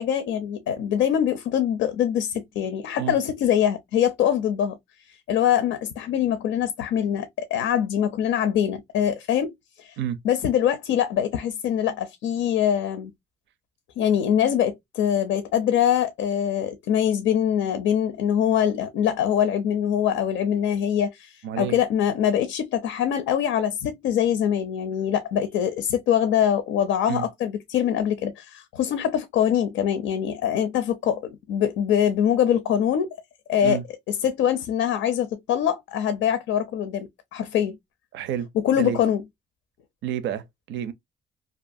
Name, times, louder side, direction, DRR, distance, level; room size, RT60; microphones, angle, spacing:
voice 1, 0.0-4.8 5.1-9.5 9.8-10.0 10.2-13.1 14.0-33.2 33.5-33.8 34.1-37.8 38.5-39.2, left 9 dB, 85° left, 0.5 m, -23 dB
voice 2, 21.4-21.8 27.1-27.2 33.6-33.8 38.1-39.0 40.0-40.9, right 10 dB, 70° right, 0.5 m, -29 dB
2.4 x 2.4 x 2.5 m
cardioid pair, 90°, 20 cm